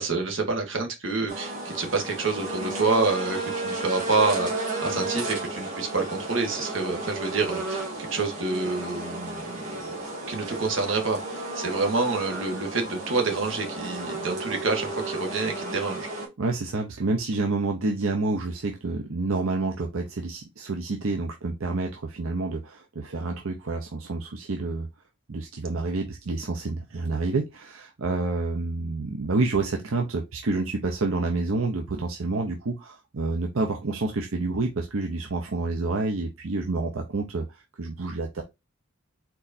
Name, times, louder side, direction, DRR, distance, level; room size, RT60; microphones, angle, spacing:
voice 1, 0.0-10.0 10.3-16.1, right 3 dB, 70° right, 1.5 m, -28 dB
sound 1, 1.3-16.3, right 2 dB, 40° right, 1.8 m, -33 dB
voice 2, 16.4-24.9 25.3-38.4, right 3 dB, 90° right, 0.7 m, -28 dB
4.5 x 4.2 x 2.7 m
head